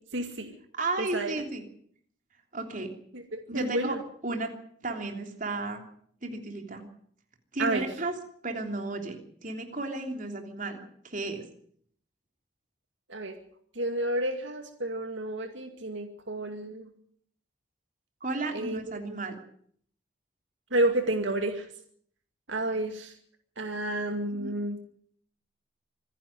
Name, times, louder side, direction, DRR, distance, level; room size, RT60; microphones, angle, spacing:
voice 1, 0.1-0.5 1.0-1.3 3.1-4.0 7.6-7.8 13.1-13.3 13.8-16.9 18.5-19.0 20.7-21.7 22.5-23.1 23.6-24.8, right 1 dB, 70° right, 5 dB, 2.3 m, -30 dB
voice 2, 0.7-1.6 2.5-2.9 3.5-3.9 4.2-4.5 4.8-5.8 6.2-6.8 7.5-8.1 8.4-11.4 18.2-19.4 24.3-24.6, right 2 dB, 40° right, 4 dB, 3.2 m, -33 dB
26.0 x 10.5 x 9.4 m, 0.63 s
head